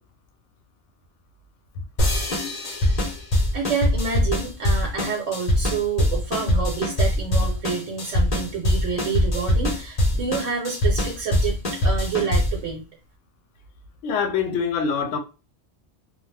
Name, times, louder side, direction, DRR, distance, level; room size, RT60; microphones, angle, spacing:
voice 1, 2.0-2.5 14.0-15.2, left 6 dB, 85° left, 0.9 m, -26 dB
sound 1, 2.0-12.7, left 1 dB, 40° left, 0.7 m, -22 dB
voice 2, 3.5-11.6 11.8-12.8, right 5 dB, 90° right, 1.2 m, -28 dB
2.4 x 2.1 x 3.2 m
omnidirectional pair, 1.2 m